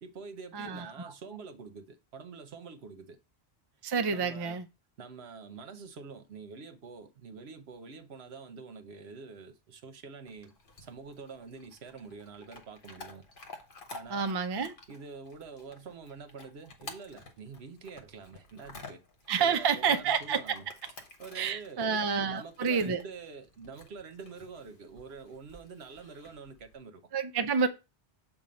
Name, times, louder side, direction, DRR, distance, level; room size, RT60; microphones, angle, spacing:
voice 1, 0.0-3.2 4.1-4.6 5.0-10.5 10.8-13.2 13.9-14.3 14.9-19.0 19.4-20.7 21.2-27.1, right 5 dB, 70° right, 1.1 m, -46 dB
voice 2, 0.5-1.1 3.8-4.6 14.1-14.7 19.3-20.4 21.3-23.0 27.1-27.7, right 6 dB, 40° right, 0.3 m, -29 dB
Chewing mastication / Dog, 10.3-26.8, left 2 dB, 55° left, 1.2 m, -52 dB
7.1 x 2.6 x 5.1 m
omnidirectional pair, 1.1 m